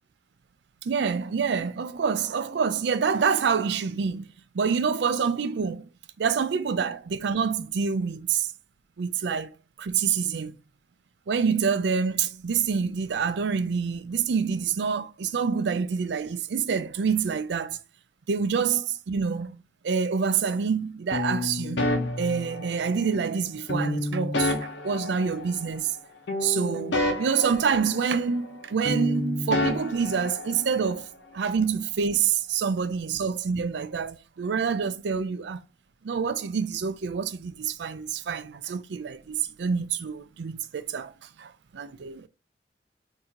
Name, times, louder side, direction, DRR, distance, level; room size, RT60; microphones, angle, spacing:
voice 1, 0.8-4.3 4.5-5.9 6.2-8.5 9.0-9.5 9.8-10.6 11.3-17.8 18.3-21.8 22.2-25.9 26.4-31.1 31.3-35.6 36.0-41.1 41.4-42.3, right 6 dB, 70° right, 0.4 m, -27 dB
sound 1, 21.1-23.1 23.7-26.0 26.3-28.6 28.8-30.9, left 1 dB, 85° left, 1.0 m, -30 dB
4.4 x 2.7 x 3.7 m
head